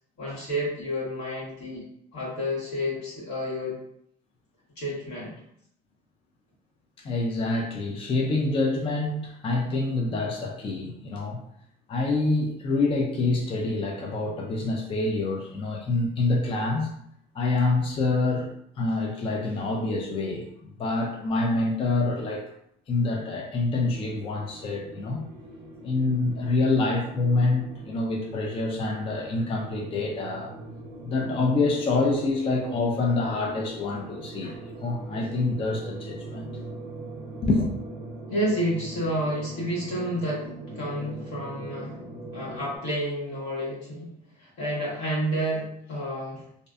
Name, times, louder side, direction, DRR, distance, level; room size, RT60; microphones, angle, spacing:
voice 1, 0.2-1.8 2.1-3.7 4.8-5.3 38.3-40.4 40.7-41.9 42.3-44.1 44.4-46.4, equal, 85° left, -7 dB, 1.3 m, -30 dB
voice 2, 7.0-11.4 11.9-16.9 17.3-22.5 22.9-25.2 25.8-30.5 31.0-36.5 37.4-37.7, left 3 dB, 30° left, 0 dB, 0.4 m, -26 dB
sound 1, 23.7-42.8, right 2 dB, 85° right, 0.4 m, -41 dB
2.6 x 2.1 x 2.4 m, 0.71 s
cardioid pair, 110°, 17 cm